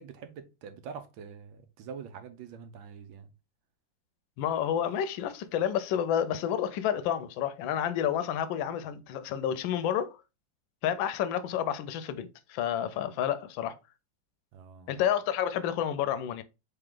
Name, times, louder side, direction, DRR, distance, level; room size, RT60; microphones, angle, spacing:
voice 1, 0.0-3.3 14.5-14.9, right 6 dB, 85° right, 1.5 m, -45 dB
voice 2, 4.4-10.2 10.8-13.7 14.9-16.4, left 9 dB, 85° left, 1.3 m, -30 dB
3.7 x 3.4 x 3.6 m
omnidirectional pair, 2.1 m